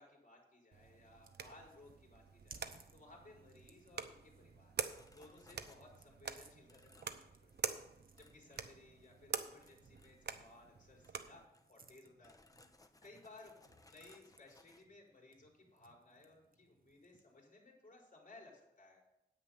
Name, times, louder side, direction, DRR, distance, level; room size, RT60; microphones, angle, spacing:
voice 1, 0.0-4.7 5.1-7.8 8.2-11.4 11.7-12.4 13.0-13.5 13.9-19.0, left 2 dB, 50° left, -1 dB, 4.7 m, -60 dB
sound 1, 0.7-11.5, right 6 dB, 75° right, 0.8 m, -47 dB
sound 2, 0.8-17.4, right 4 dB, 55° right, 1.2 m, -66 dB
sound 3, 4.9-6.2 6.7-7.2 7.5-7.8 8.1-9.3 9.6-10.7 11.0-11.2 11.5-14.9, left 2 dB, 20° left, 1.0 m, -66 dB
9.7 x 9.0 x 5.8 m, 0.84 s
wide cardioid pair, 70°, 17 cm